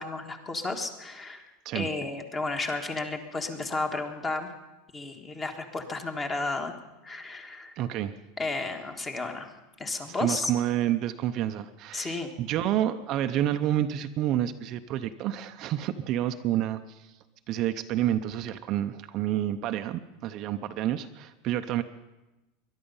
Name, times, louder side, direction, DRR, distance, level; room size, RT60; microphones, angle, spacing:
voice 1, 0.0-4.5 4.9-6.7 7.0-7.8 8.4-9.5 9.8-10.5 11.9-12.3, left 3 dB, 20° left, 5 dB, 1.5 m, -33 dB
voice 2, 7.8-8.1 10.0-17.1 17.5-21.8, right 12 dB, 40° right, 8 dB, 0.6 m, -29 dB
21.5 x 11.0 x 5.5 m, 1.0 s
supercardioid pair, 150°, 0 cm